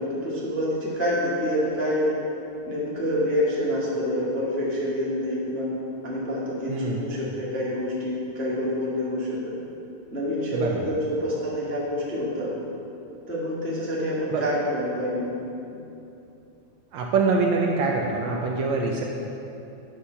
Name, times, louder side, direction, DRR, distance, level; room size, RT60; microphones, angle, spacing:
voice 1, 0.0-2.1 2.7-5.7 6.0-9.5 10.1-12.5 13.3-15.3 15.7-15.8, equal, 10° left, -7 dB, 0.8 m, -27 dB
voice 2, 6.7-7.1 10.5-10.9 14.3-14.4 16.9-19.0, right 4 dB, 75° right, 0 dB, 1.8 m, -24 dB
9.5 x 6.4 x 5.6 m, 2.8 s
omnidirectional pair, 3.7 m